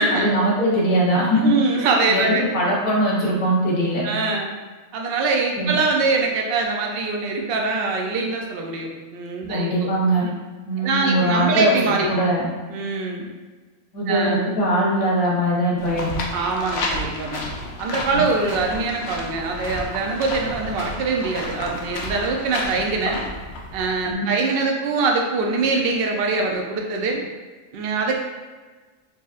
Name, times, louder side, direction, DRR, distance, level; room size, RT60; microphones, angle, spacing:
voice 1, 0.1-1.5 2.1-4.0 5.6-5.7 9.5-10.3 10.7-12.4 13.9-16.1 18.1-18.2 24.1-24.2, right 1 dB, 85° left, -5 dB, 1.4 m, -21 dB
voice 2, 1.3-2.5 4.0-4.5 4.9-10.3 10.8-12.1 12.7-13.3 14.1-14.4 16.3-17.4 17.8-23.2 23.7-27.2 27.7-28.2, right 3 dB, 55° right, 1 dB, 0.7 m, -23 dB
sound 1, 15.8-24.1, left 2 dB, 60° left, 0.8 m, -31 dB
4.6 x 2.8 x 2.4 m, 1.4 s
omnidirectional pair, 1.4 m